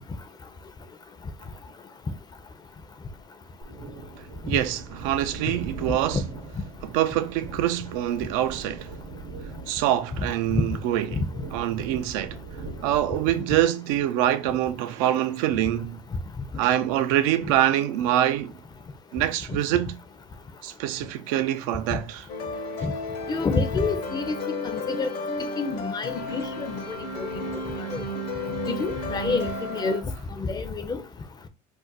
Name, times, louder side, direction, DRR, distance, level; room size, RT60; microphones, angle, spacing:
sound 1, 3.6-13.3, right 3 dB, 50° right, 0.8 m, -40 dB
voice 1, 4.5-6.2 6.8-8.9 9.7-11.2 11.5-12.4 12.8-16.0 16.6-18.5 19.1-20.0 20.6-22.2, right 12 dB, 75° right, 0.4 m, -25 dB
sound 2, 22.3-30.0, left 2 dB, 60° left, 0.8 m, -32 dB
voice 2, 23.3-24.3 24.7-25.1 25.6-27.3 27.9-28.0 28.8-30.0 30.4-31.0, left 4 dB, 25° left, 0.5 m, -28 dB
2.5 x 2.1 x 3.8 m
supercardioid pair, 90°, 18 cm